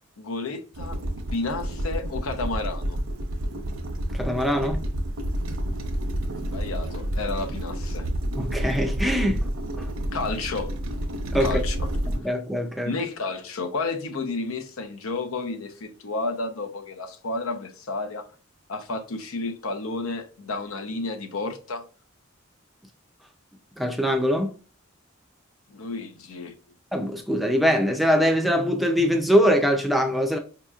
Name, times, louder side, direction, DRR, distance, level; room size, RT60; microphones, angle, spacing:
voice 1, 0.2-1.0 1.3-3.0 6.4-8.1 10.1-10.7 11.4-11.9 12.8-18.2 18.7-21.8 25.7-26.5, left 3 dB, 85° left, 0.7 m, -31 dB
sound 1, 0.7-12.2, right 1 dB, 80° right, 0.8 m, -29 dB
voice 2, 4.1-4.8 8.4-9.5 9.8-9.9 11.3-11.6 12.2-12.9 23.8-24.5 26.9-30.4, equal, ahead, 0.4 m, -22 dB
4.9 x 2.9 x 2.3 m
head